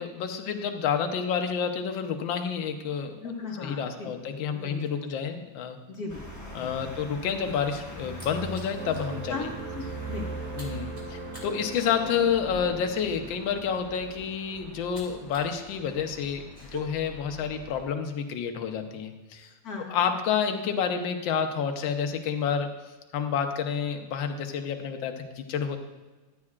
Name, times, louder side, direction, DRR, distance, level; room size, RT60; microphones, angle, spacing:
voice 1, 0.0-3.1 3.6-5.8 6.5-9.5 10.6-19.5 19.9-22.7 23.1-25.8, left 7 dB, 65° left, 6 dB, 1.4 m, -29 dB
voice 2, 3.2-4.1 4.5-5.1 5.9-6.7 9.3-10.3 19.6-20.1, left 3 dB, 50° left, 0 dB, 1.5 m, -38 dB
sound 1, 6.1-17.9, right 2 dB, 10° left, 0.9 m, -42 dB
sound 2, 8.1-9.1 9.5-9.7 10.0-15.5 15.8-16.8, right 2 dB, 15° right, 2.1 m, -48 dB
sound 3, 8.7-15.7, right 2 dB, 85° right, 1.7 m, -42 dB
14.0 x 9.6 x 2.4 m, 1.2 s
omnidirectional pair, 2.4 m